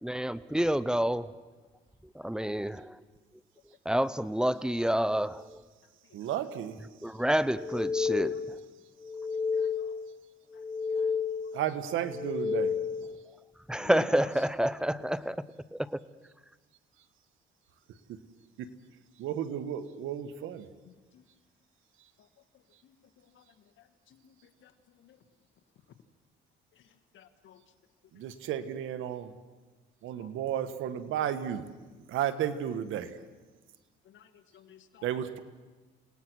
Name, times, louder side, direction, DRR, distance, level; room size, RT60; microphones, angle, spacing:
voice 1, 0.0-1.3 2.1-3.0 3.8-5.6 7.0-8.5 13.7-15.4 15.7-16.0, equal, 5° right, 16 dB, 0.8 m, -28 dB
voice 2, 6.1-6.8 11.5-12.8 18.1-18.2 18.6-18.7 19.2-20.7 28.1-29.3 30.0-31.7 32.1-33.2 35.0-35.4, right 10 dB, 90° right, 11 dB, 1.4 m, -33 dB
sound 1, 7.5-8.6 9.0-10.1 10.5-11.6 12.1-13.2, left 5 dB, 25° left, 2.2 m, -31 dB
voice 3, 9.5-9.9 10.9-11.1 13.8-14.3 21.1-21.2 22.8-22.9 24.1-24.3 24.6-24.7 25.0-25.2 27.1-27.6 30.2-30.3 34.1-34.3 34.5-35.0, left 9 dB, 70° left, 10 dB, 1.8 m, -49 dB
28.5 x 18.5 x 6.3 m, 1.3 s
cardioid pair, 90°, 20 cm